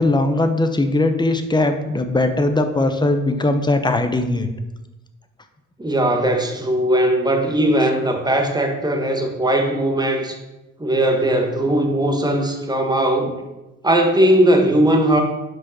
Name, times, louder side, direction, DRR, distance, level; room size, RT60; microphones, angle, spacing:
voice 1, 0.0-4.5, left 2 dB, 15° left, 7 dB, 0.9 m, -19 dB
voice 2, 5.8-10.4 10.8-13.3 13.8-15.2, right 1 dB, 15° right, 3 dB, 1.5 m, -18 dB
6.4 x 5.0 x 6.0 m, 1.0 s
cardioid pair, 90°, 30 cm